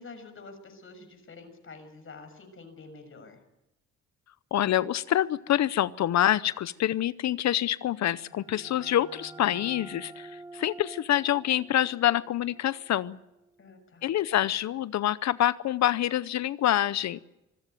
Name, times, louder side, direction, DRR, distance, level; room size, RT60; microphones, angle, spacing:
voice 1, 0.0-3.4 13.6-14.1, left 3 dB, 45° left, 7 dB, 6.4 m, -47 dB
voice 2, 4.5-13.2 14.0-17.2, left 12 dB, 65° left, 17 dB, 0.7 m, -26 dB
sound 1, 8.0-13.5, right 2 dB, 10° right, 1.1 m, -48 dB
25.5 x 15.0 x 9.3 m, 0.93 s
cardioid pair, 90°, 30 cm